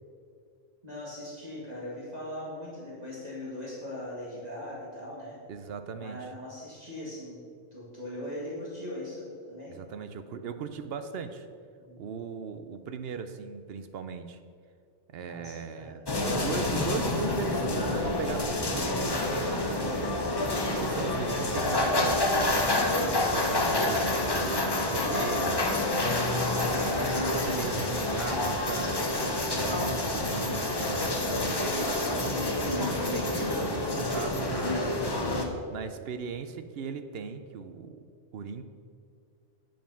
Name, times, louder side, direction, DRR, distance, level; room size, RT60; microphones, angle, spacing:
voice 1, 0.8-5.4 6.0-7.4 7.7-9.7 11.8-12.0 15.2-16.0 26.5-27.0 31.0-31.2, left 1 dB, 35° right, -7 dB, 1.9 m, -40 dB
voice 2, 5.5-6.2 9.7-11.5 12.0-14.4 15.1-19.9 20.7-26.3 27.3-34.8 35.7-38.0 38.3-38.6, right 6 dB, 65° right, 9 dB, 0.8 m, -38 dB
sound 1, 16.1-35.4, left 2 dB, 25° left, 0.7 m, -28 dB
9.2 x 5.2 x 5.6 m, 2.2 s
omnidirectional pair, 1.2 m